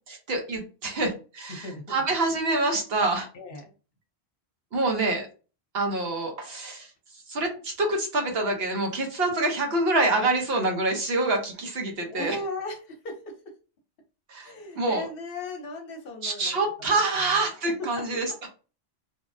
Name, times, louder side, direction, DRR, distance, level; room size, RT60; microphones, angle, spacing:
voice 1, 0.1-3.3 4.7-5.3 5.7-6.9 7.3-12.4 14.3-15.0 16.2-18.2, right 2 dB, 70° right, 2 dB, 1.0 m, -26 dB
voice 2, 1.5-1.8 3.3-3.7 12.1-13.5 14.4-17.2 17.6-18.4, left 2 dB, 60° left, 3 dB, 0.9 m, -37 dB
3.3 x 2.1 x 2.5 m, 0.35 s
omnidirectional pair, 1.1 m